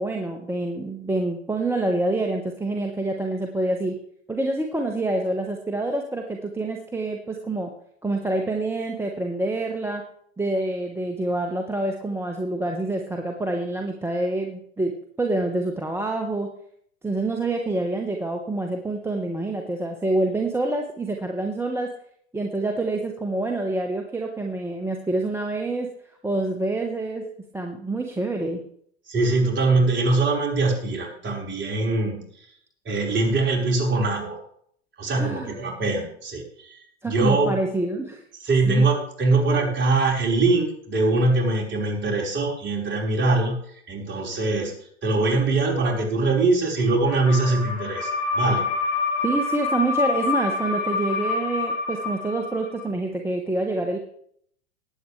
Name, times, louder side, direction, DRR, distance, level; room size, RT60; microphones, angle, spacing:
voice 1, 0.0-4.0 4.3-7.7 8.0-10.0 10.4-14.9 15.2-16.5 17.0-21.9 22.3-25.9 26.2-27.3 27.5-28.6 35.2-35.6 37.0-38.2 38.6-38.9 49.2-54.0, right 2 dB, 5° right, 2 dB, 1.2 m, -27 dB
voice 2, 29.1-32.5 32.8-34.4 35.0-37.5 38.4-44.7 45.0-48.6, right 3 dB, 30° right, -1 dB, 4.7 m, -22 dB
sound 1, 47.1-52.9, left 4 dB, 80° left, 2.6 m, -27 dB
19.5 x 8.6 x 3.3 m, 0.66 s
hypercardioid pair, 95°, 37 cm